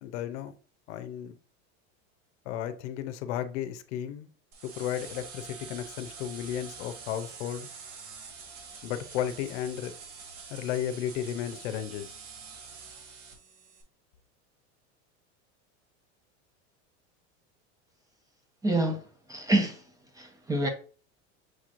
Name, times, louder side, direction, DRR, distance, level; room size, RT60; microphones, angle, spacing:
voice 1, 0.0-0.5 0.9-1.4 2.5-4.3 4.6-7.7 8.8-9.9 10.5-12.1, left 10 dB, 75° left, 0.7 m, -34 dB
sound 1, 4.5-13.8, right 5 dB, 80° right, 1.6 m, -46 dB
voice 2, 18.6-19.0 19.3-19.8 20.2-20.7, right 1 dB, 10° right, 0.6 m, -27 dB
6.3 x 3.0 x 2.5 m
supercardioid pair, 145°, 35 cm